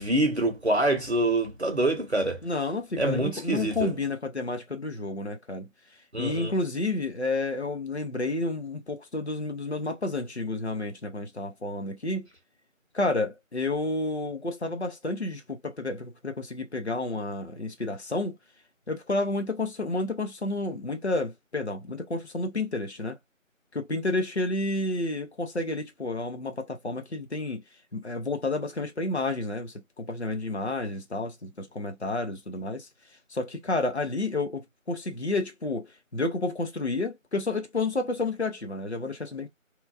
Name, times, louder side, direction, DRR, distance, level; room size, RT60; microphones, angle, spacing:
voice 1, 0.0-2.4 3.0-3.9 6.1-6.5, right 1 dB, 55° right, 1.0 m, -25 dB
voice 2, 2.4-5.7 6.2-12.3 12.9-18.4 18.9-23.2 23.7-27.6 27.9-32.9 33.3-39.5, left 2 dB, 55° left, 0.7 m, -30 dB
3.0 x 2.4 x 2.3 m
figure-of-eight pair, 180°, 40 cm